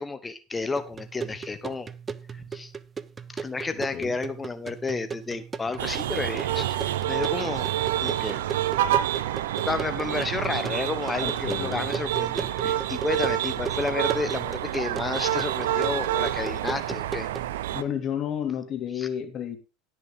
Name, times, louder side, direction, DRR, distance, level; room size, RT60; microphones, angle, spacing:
voice 1, 0.0-1.9 2.3-2.7 3.3-7.7 8.0-8.4 9.7-17.3 19.0-19.1, left 3 dB, 20° left, 11 dB, 1.2 m, -31 dB
sound 1, 0.8-17.5, right 6 dB, 25° right, 0.7 m, -37 dB
voice 2, 3.8-4.2 11.2-11.8 17.7-19.6, left 9 dB, 45° left, 6 dB, 2.6 m, -31 dB
sound 2, 5.8-17.8, right 12 dB, 75° right, 0.6 m, -28 dB
18.0 x 6.3 x 3.7 m, 0.30 s
hypercardioid pair, 75°, 0 cm